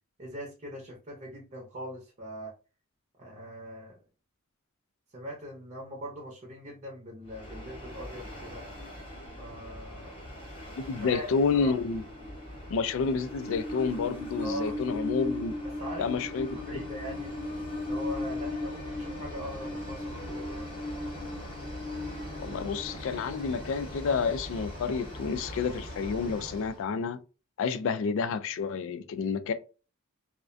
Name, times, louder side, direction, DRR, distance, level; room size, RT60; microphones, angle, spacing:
voice 1, 0.2-2.5 3.2-4.0 5.1-8.6 9.4-10.2 11.0-11.7 14.4-14.8 15.8-16.1 16.5-17.3 17.8-20.7, equal, 35° right, 0.6 m, -41 dB
Train, 7.3-26.8, left 1 dB, 25° left, 0.8 m, -38 dB
voice 2, 10.8-12.0 12.7-15.5 16.0-16.8 22.4-27.2 27.6-29.5, left 5 dB, 65° left, 0.3 m, -29 dB
2.4 x 2.1 x 2.5 m
head